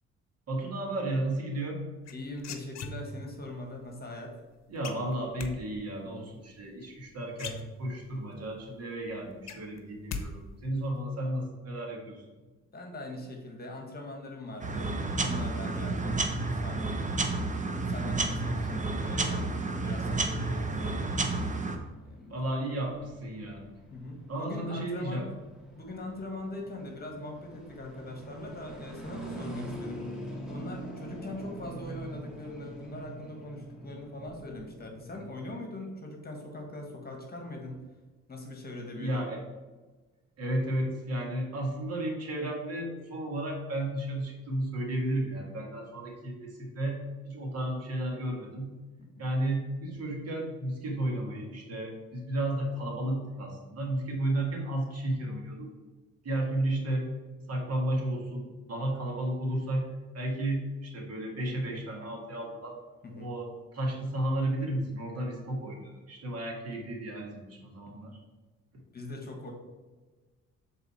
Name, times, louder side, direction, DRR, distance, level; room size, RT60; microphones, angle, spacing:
voice 1, 0.5-1.9 4.7-12.3 22.3-23.6 24.3-25.3 39.0-39.4 40.4-48.7 49.2-55.7 56.2-57.0 57.5-59.9 60.1-62.8 63.2-68.2, right 1 dB, 55° right, 0 dB, 1.9 m, -33 dB
sound 1, 2.1-3.4 4.8-5.5 6.9-7.0 7.3-8.2 8.6-8.7 9.0-10.3 10.5-11.0, left 4 dB, 60° left, 0.8 m, -39 dB
voice 2, 2.1-4.4 12.7-17.4 17.8-21.0 22.1-22.5 23.9-25.2 25.7-30.0 30.4-37.8 38.3-39.2 49.1-49.3 63.0-63.3 67.9-68.1 68.9-69.5, left 2 dB, 30° left, 2 dB, 1.5 m, -41 dB
sound 2, 14.6-21.8, right 3 dB, 25° right, 0.8 m, -31 dB
sound 3, 21.9-35.5, right 1 dB, ahead, 1.7 m, -45 dB
6.9 x 4.1 x 4.2 m, 1.3 s
cardioid pair, 90°, 30 cm